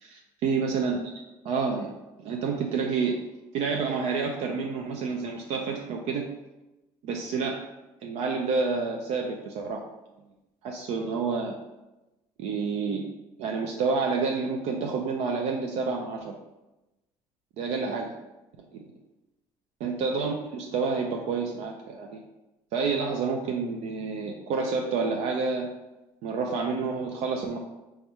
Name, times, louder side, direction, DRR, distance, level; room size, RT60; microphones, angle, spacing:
voice 1, 0.0-3.2 3.5-6.3 7.0-7.6 8.0-9.9 10.6-11.6 12.4-13.0 13.4-16.4 17.6-18.1 18.6-18.9 19.8-22.2 22.7-25.7 26.2-27.6, right 4 dB, 65° right, 1 dB, 0.5 m, -29 dB
4.8 x 2.3 x 4.2 m, 1.0 s
supercardioid pair, 95°, 12 cm